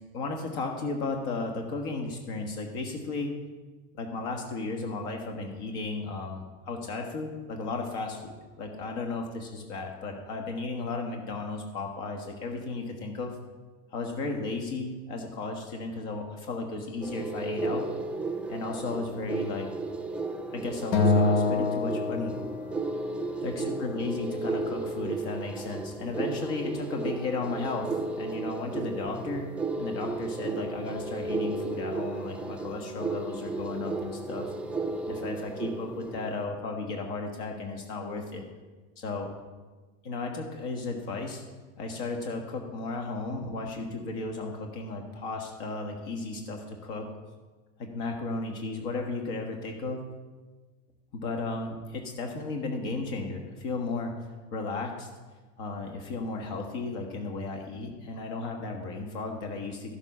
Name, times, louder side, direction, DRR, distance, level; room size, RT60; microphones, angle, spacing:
voice 1, 0.1-3.3 3.9-13.4 13.9-17.9 18.5-19.7 20.5-22.3 23.4-29.5 29.8-34.5 35.1-38.4 39.0-39.3 40.0-41.4 41.8-47.1 47.8-50.0 51.1-54.1 54.5-55.1 55.6-59.9, left 3 dB, 65° left, 3 dB, 1.7 m, -34 dB
sound 1, 17.0-36.4, right 3 dB, 5° right, 0.5 m, -34 dB
Acoustic guitar, 20.9-23.3, left 3 dB, 85° left, 1.5 m, -26 dB
13.5 x 7.3 x 5.6 m, 1.3 s
supercardioid pair, 150°, 36 cm